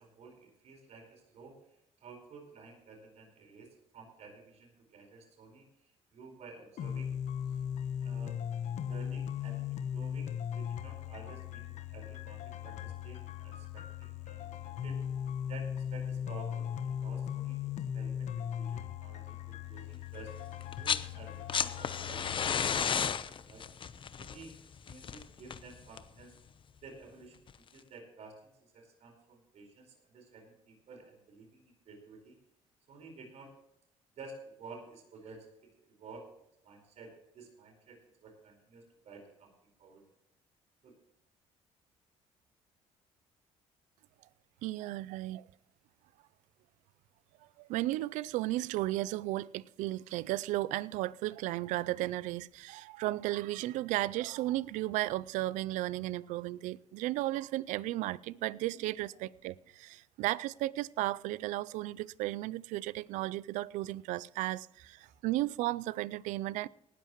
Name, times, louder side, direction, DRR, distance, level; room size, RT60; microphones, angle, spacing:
voice 1, 0.0-7.1 8.0-8.4 8.8-15.0 15.5-23.7 24.2-24.6 24.8-26.4 26.8-32.4 32.9-33.5 34.1-36.3 36.6-39.5 39.8-40.0 40.8-41.0, right 3 dB, 65° right, 4.6 m, -52 dB
sound 1, 6.8-22.8, left 9 dB, 70° left, 1.1 m, -38 dB
sound 2, 20.6-21.1 21.3-26.2 27.5-27.6, left 7 dB, 45° left, 0.8 m, -33 dB
voice 2, 44.6-45.4 47.6-66.7, right 16 dB, 85° right, 0.4 m, -34 dB
18.5 x 13.0 x 3.1 m
cardioid pair, 80°, 12 cm